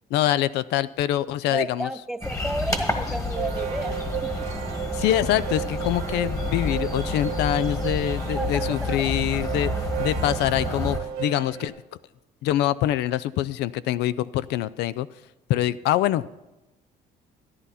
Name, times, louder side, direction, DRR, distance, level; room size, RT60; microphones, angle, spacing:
voice 1, 0.1-1.9 4.9-9.7 10.0-11.7 12.4-15.1 15.5-16.3, left 13 dB, 80° left, 17 dB, 0.4 m, -24 dB
voice 2, 1.5-4.9 8.3-9.2, right 1 dB, 5° right, 10 dB, 0.5 m, -33 dB
sound 1, 2.2-11.0, left 2 dB, 20° left, 1.6 m, -30 dB
sound 2, 2.9-11.7, right 10 dB, 80° right, 1.3 m, -33 dB
13.5 x 10.5 x 4.2 m, 1.0 s
cardioid pair, 110°, 17 cm